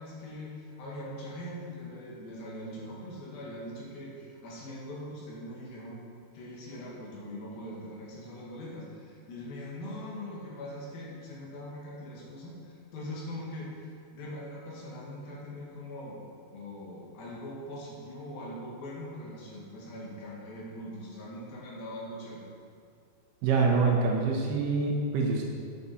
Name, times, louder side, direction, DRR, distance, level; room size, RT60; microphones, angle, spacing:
voice 1, 0.0-6.0 6.3-16.2 16.5-22.4, left 1 dB, 60° left, -5 dB, 3.0 m, -42 dB
voice 2, 23.4-25.4, right 4 dB, 75° right, -1 dB, 2.7 m, -25 dB
8.8 x 8.3 x 4.2 m, 2.3 s
omnidirectional pair, 5.4 m